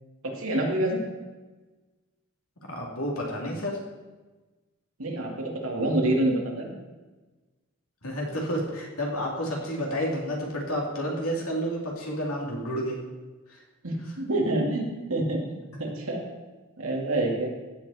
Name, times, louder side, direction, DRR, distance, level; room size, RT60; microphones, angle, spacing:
voice 1, 0.2-1.0 5.0-6.8 13.8-16.2 16.8-17.5, right 1 dB, 75° right, 0 dB, 2.3 m, -27 dB
voice 2, 2.6-3.8 8.0-13.0 13.5-13.6, equal, 85° left, -1 dB, 3.0 m, -30 dB
15.0 x 8.4 x 4.2 m, 1.2 s
head